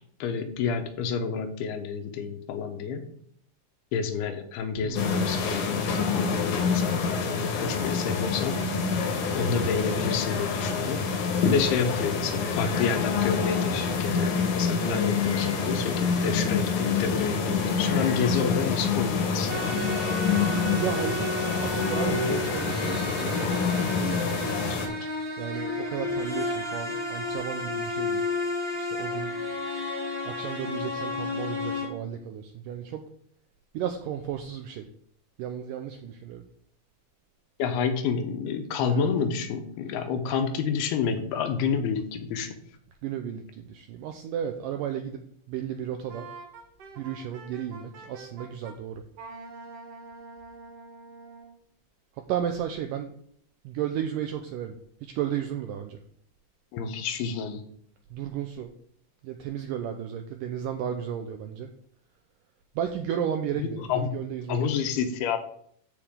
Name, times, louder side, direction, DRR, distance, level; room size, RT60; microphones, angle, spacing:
voice 1, 0.2-3.0 3.9-8.6 9.3-11.1 11.4-19.8 24.7-25.1 37.6-42.6 56.7-57.6 63.6-64.2 64.5-65.4, left 6 dB, 80° left, 7 dB, 2.9 m, -29 dB
voice 2, 4.8-5.3 14.8-15.1 20.8-23.6 23.9-24.4 25.4-28.3 28.7-29.4 30.3-33.1 33.7-34.9 35.4-36.4 38.9-39.1 39.9-40.0 43.0-45.2 45.5-46.3 47.0-49.0 52.1-53.1 53.6-54.8 55.0-56.0 58.1-58.7 59.2-61.7 62.8-64.8, right 9 dB, 85° right, 5 dB, 1.9 m, -34 dB
sound 1, 5.0-24.9, left 5 dB, 65° left, 2.3 m, -27 dB
sound 2, 19.5-31.9, left 2 dB, 25° right, 1.2 m, -32 dB
Wind instrument woodwind instrument, 46.1-48.8 49.2-51.6, right 3 dB, 60° right, 1.7 m, -45 dB
13.5 x 5.0 x 3.7 m, 0.63 s
omnidirectional pair, 4.5 m